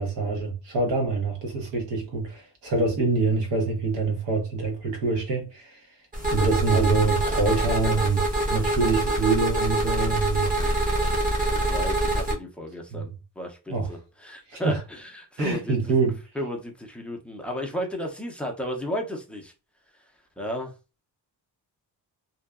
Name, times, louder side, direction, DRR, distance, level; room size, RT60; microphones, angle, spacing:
voice 1, 0.0-6.0 6.3-8.2 8.5-10.5 12.9-13.1 13.7-13.9 14.5-14.8 15.4-16.2, right 3 dB, 90° right, 1.0 m, -25 dB
sound 1, 6.1-12.3, right 1 dB, 20° right, 0.7 m, -25 dB
voice 2, 11.5-15.9 16.4-19.5 20.4-20.7, equal, 5° left, 0.4 m, -33 dB
2.7 x 2.3 x 2.3 m
wide cardioid pair, 150°, 41 cm